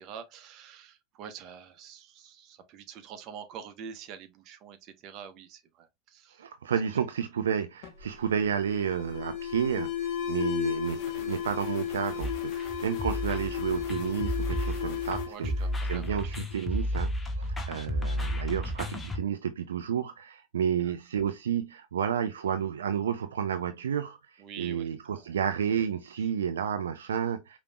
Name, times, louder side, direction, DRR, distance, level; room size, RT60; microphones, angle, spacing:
voice 1, 0.0-6.4 15.3-16.4 20.8-20.9 24.4-25.2 26.2-26.3, right 7 dB, 45° right, 0.9 m, -46 dB
voice 2, 6.4-24.2 24.6-27.6, right 8 dB, 75° right, 0.4 m, -31 dB
Alarm, 7.8-16.4, left 9 dB, 50° left, 1.1 m, -34 dB
sound 1, 12.2-19.2, equal, 15° left, 1.0 m, -32 dB
5.0 x 3.0 x 2.2 m
hypercardioid pair, 90°, 0 cm